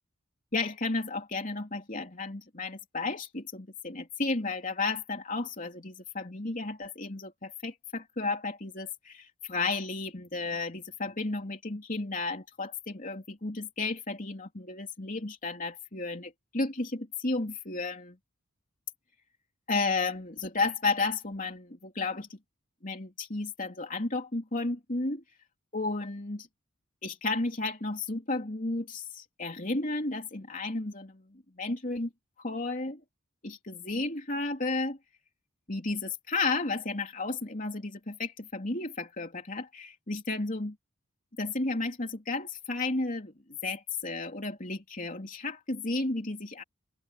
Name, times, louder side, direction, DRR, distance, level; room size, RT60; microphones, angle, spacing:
voice 1, 0.5-18.2 19.7-22.4 22.8-25.2 25.7-26.5 27.0-32.1 32.4-33.0 33.4-35.0 35.7-40.7 41.4-43.3 43.6-46.6, left 3 dB, 40° left, 3.2 m, -33 dB
head